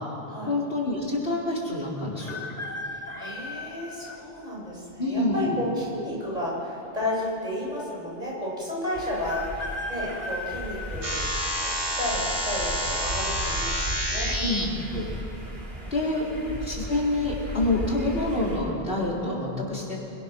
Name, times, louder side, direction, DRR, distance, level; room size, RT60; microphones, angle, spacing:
voice 1, 0.5-2.4 5.0-5.4 14.4-15.1 15.9-16.2 16.6-20.0, left 2 dB, 65° left, -4 dB, 4.8 m, -27 dB
sound 1, 2.2-4.2 4.9-5.0 6.1-6.7 7.0-7.1 7.3-7.4 9.2-11.8 12.4-12.8 13.9-14.3 14.5-14.6 15.1-15.5 16.0-16.2, left 2 dB, 40° left, 1.7 m, -37 dB
voice 2, 2.9-11.2 11.5-14.3 15.8-16.6, left 1 dB, 40° right, -5 dB, 8.1 m, -33 dB
sound 2, 8.9-18.6, right 1 dB, 70° right, 4.6 m, -36 dB
sound 3, 11.0-14.6, equal, 25° right, 3.6 m, -29 dB
27.5 x 25.0 x 6.3 m, 2.9 s
omnidirectional pair, 1.0 m